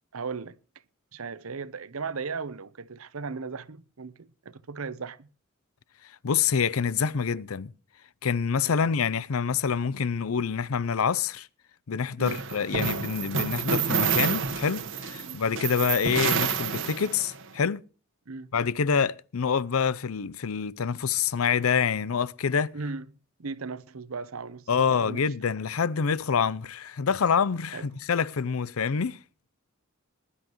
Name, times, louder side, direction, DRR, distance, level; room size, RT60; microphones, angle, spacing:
voice 1, 0.1-0.6 1.1-5.3 8.6-8.8 12.2-12.4 15.2-15.4 18.3-18.5 22.7-23.0 23.4-25.2 27.7-27.9, right 4 dB, 80° right, 0.8 m, -37 dB
voice 2, 6.2-7.7 8.2-11.5 11.9-17.8 18.5-22.7 24.7-29.2, left 6 dB, 80° left, 0.6 m, -26 dB
sound 1, 12.2-17.4, right 6 dB, 65° right, 1.2 m, -28 dB
20.5 x 11.0 x 3.0 m
head